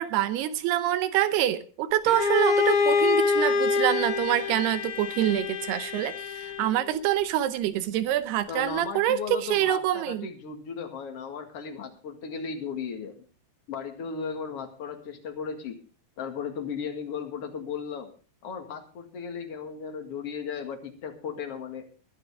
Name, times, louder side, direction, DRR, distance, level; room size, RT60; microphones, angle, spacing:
voice 1, 0.0-10.3, right 12 dB, 80° right, 12 dB, 2.9 m, -26 dB
Bowed string instrument, 2.1-6.9, left 5 dB, 60° left, 1.5 m, -26 dB
voice 2, 8.5-13.3 13.7-15.8 16.2-18.1 18.4-21.9, left 6 dB, 45° left, 4 dB, 2.3 m, -36 dB
21.0 x 11.0 x 3.6 m, 0.37 s
omnidirectional pair, 4.7 m